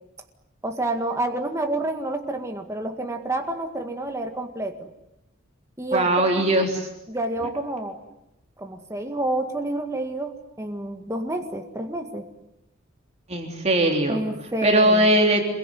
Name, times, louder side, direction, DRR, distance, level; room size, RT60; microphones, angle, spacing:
voice 1, 0.6-4.9 5.8-6.5 7.1-8.0 8.6-12.3 14.1-15.1, right 2 dB, 15° right, 4 dB, 2.0 m, -29 dB
voice 2, 5.9-6.9 13.3-14.2 14.6-15.4, right 1 dB, 35° right, 2 dB, 3.5 m, -20 dB
27.0 x 23.0 x 9.4 m, 0.86 s
head